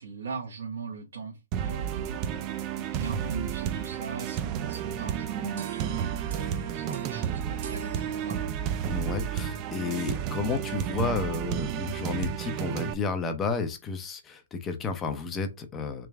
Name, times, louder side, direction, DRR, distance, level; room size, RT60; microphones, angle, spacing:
voice 1, 0.0-8.5, right 5 dB, 85° right, 1.1 m, -40 dB
sound 1, 1.5-12.9, right 9 dB, 30° right, 0.4 m, -32 dB
sound 2, 5.6-8.9, right 4 dB, 60° right, 1.2 m, -45 dB
voice 2, 8.8-16.1, left 4 dB, 15° left, 0.6 m, -32 dB
3.4 x 3.0 x 3.4 m
hypercardioid pair, 150°, 0 cm